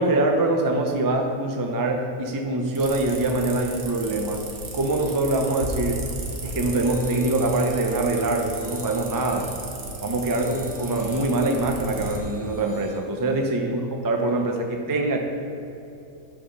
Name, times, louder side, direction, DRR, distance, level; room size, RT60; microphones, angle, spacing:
voice 1, 0.0-4.4 4.7-6.0 6.4-9.5 10.0-15.2, right 2 dB, 25° right, 3 dB, 0.5 m, -24 dB
sound 1, 2.8-12.2, right 3 dB, 80° right, 1.5 m, -35 dB
sound 2, 6.6-13.4, right 1 dB, 60° left, 2.5 m, -47 dB
9.0 x 6.0 x 5.5 m, 2.7 s
omnidirectional pair, 1.5 m